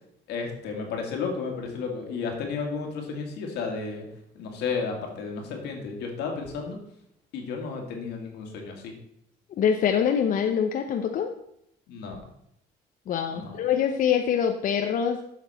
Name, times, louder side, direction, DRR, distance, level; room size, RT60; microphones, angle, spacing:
voice 1, 0.3-4.0 4.4-6.8 7.3-8.9 11.9-12.3 13.3-13.6, left 5 dB, 80° left, 2 dB, 2.0 m, -33 dB
voice 2, 9.6-11.3 13.1-15.2, left 8 dB, 55° left, 5 dB, 0.6 m, -24 dB
8.2 x 6.0 x 4.2 m, 0.76 s
cardioid pair, 110°, 17 cm